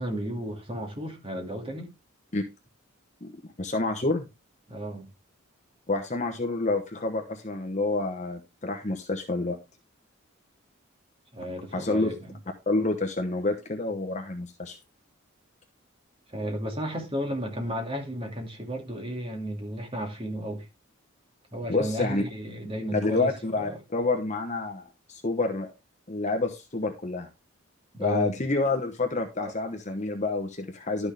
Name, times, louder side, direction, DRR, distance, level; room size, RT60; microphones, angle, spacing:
voice 1, 0.0-1.9 4.7-5.1 11.3-12.1 16.3-20.6 21.5-23.8 27.9-28.4 29.4-29.5, equal, 25° right, 2.5 m, -33 dB
voice 2, 3.6-4.2 5.9-9.6 11.7-12.1 12.7-14.8 21.7-22.2 22.9-25.7 26.1-27.3 28.0-31.1, left 3 dB, 35° left, 1.0 m, -28 dB
11.5 x 6.2 x 3.5 m
head